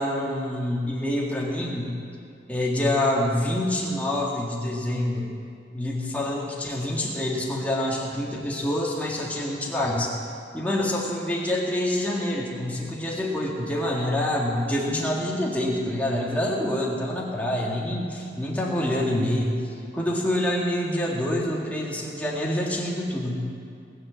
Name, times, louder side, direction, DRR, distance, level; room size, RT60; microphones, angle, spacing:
voice 1, 0.0-1.9 2.5-5.3 5.7-10.2 10.5-19.6 19.9-23.5, left 1 dB, 10° left, -4 dB, 2.0 m, -26 dB
18.5 x 7.6 x 7.5 m, 2.3 s
head